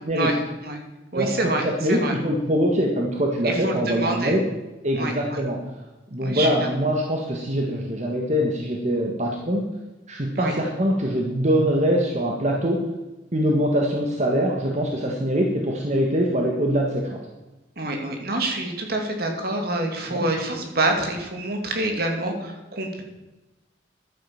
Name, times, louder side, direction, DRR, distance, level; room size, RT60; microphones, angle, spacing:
voice 1, 0.1-0.8 1.1-1.6 1.9-2.1 3.4-4.4 4.9-5.4 6.2-6.6 10.3-10.5 17.8-23.0, right 2 dB, 60° right, 3 dB, 2.6 m, -27 dB
voice 2, 1.6-4.4 4.8-5.6 6.1-9.6 10.1-12.8 13.3-17.2 20.1-20.2, equal, 40° right, 0 dB, 1.7 m, -23 dB
12.0 x 9.5 x 7.2 m, 1.0 s
head